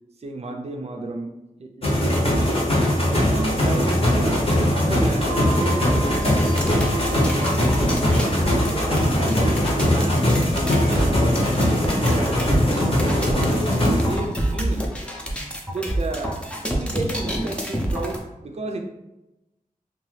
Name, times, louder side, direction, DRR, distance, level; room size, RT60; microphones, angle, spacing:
voice 1, 0.2-2.6 3.0-7.6 8.1-8.4 8.6-11.6 11.9-14.9 15.7-18.8, right 2 dB, 45° right, 3 dB, 0.4 m, -32 dB
sound 1, 1.8-14.2, left 1 dB, 40° left, 0.8 m, -20 dB
sound 2, 5.2-13.5, right 3 dB, 60° left, 1.0 m, -39 dB
sound 3, 6.1-18.2, right 1 dB, 5° left, 0.5 m, -28 dB
2.7 x 2.3 x 3.2 m, 0.96 s
wide cardioid pair, 85°, 15 cm